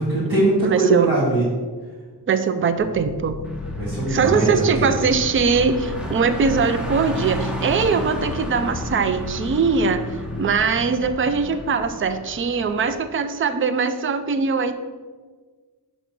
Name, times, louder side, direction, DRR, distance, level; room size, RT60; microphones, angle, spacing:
voice 1, 0.0-1.5 3.8-4.5 4.8-4.9, right 2 dB, 75° right, -10 dB, 2.1 m, -21 dB
voice 2, 0.6-1.1 2.3-3.4 4.1-10.1 10.4-14.7, right 5 dB, 35° right, 10 dB, 0.4 m, -21 dB
sound 1, 2.7-12.5, left 2 dB, 40° left, 0.8 m, -33 dB
Car, 3.4-13.0, right 1 dB, ahead, 0.7 m, -35 dB
6.2 x 4.0 x 5.8 m, 1.4 s
wide cardioid pair, 155°, 38 cm